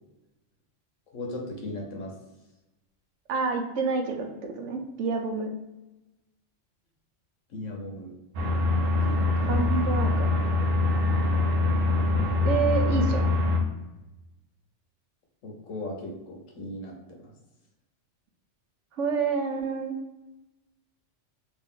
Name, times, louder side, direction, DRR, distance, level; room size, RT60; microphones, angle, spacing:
voice 1, 1.1-2.1 7.5-8.1 9.1-9.5 15.4-17.0 17.2-17.3, left 1 dB, 85° left, 1 dB, 1.2 m, -37 dB
voice 2, 3.3-5.5 9.4-10.4 12.4-13.4 18.9-19.9, right 4 dB, 80° right, 3 dB, 0.9 m, -28 dB
sound 1, 8.3-13.6, left 2 dB, 55° right, 0.8 m, -24 dB
3.0 x 2.5 x 3.6 m, 1.0 s
omnidirectional pair, 1.3 m